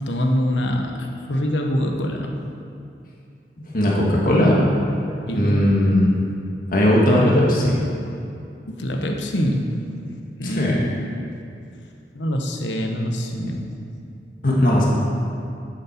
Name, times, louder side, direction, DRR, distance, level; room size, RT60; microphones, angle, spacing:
voice 1, 0.0-2.4 5.3-5.6 8.7-9.8 10.4-10.8 12.1-13.8, equal, 85° left, 2 dB, 1.2 m, -24 dB
voice 2, 3.7-4.7 5.3-6.1 6.7-7.8 10.4-10.8 14.4-14.9, left 1 dB, 50° left, -4 dB, 1.9 m, -18 dB
11.5 x 7.5 x 4.5 m, 2.6 s
head